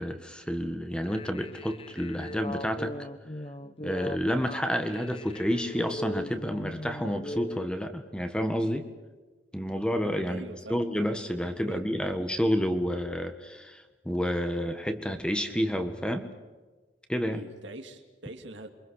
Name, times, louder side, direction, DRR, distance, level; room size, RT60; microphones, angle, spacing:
voice 1, 0.0-2.9 3.8-8.9 9.5-10.4 10.7-16.3 17.1-17.4, equal, 5° left, 7 dB, 1.5 m, -30 dB
sound 1, 1.0-7.7, left 1 dB, 30° left, 1.1 m, -39 dB
voice 2, 10.3-10.8 11.7-11.8 17.3-18.7, right 2 dB, 70° right, 5 dB, 2.6 m, -43 dB
28.0 x 24.5 x 6.5 m, 1.3 s
head